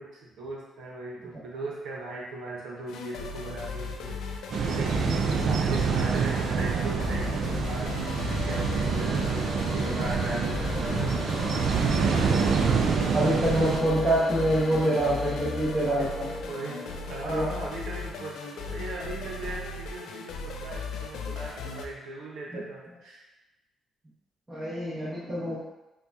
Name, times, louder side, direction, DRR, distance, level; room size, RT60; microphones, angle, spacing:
voice 1, 0.0-4.4 4.7-5.1 5.4-11.2 16.0-16.1 16.5-16.8 17.1-23.2, right 2 dB, 85° right, -3 dB, 0.8 m, -38 dB
sound 1, 2.9-21.9, left 4 dB, 80° left, 0.3 m, -37 dB
sound 2, 4.5-13.8, right 5 dB, 65° right, 0.4 m, -26 dB
sound 3, 7.3-17.5, left 1 dB, 40° left, 0.9 m, -38 dB
voice 2, 12.5-16.3 17.3-17.5 22.5-22.6 24.5-25.6, right 1 dB, 15° right, -9 dB, 0.9 m, -26 dB
4.4 x 2.3 x 2.6 m, 1.0 s
cardioid pair, 90°, 0 cm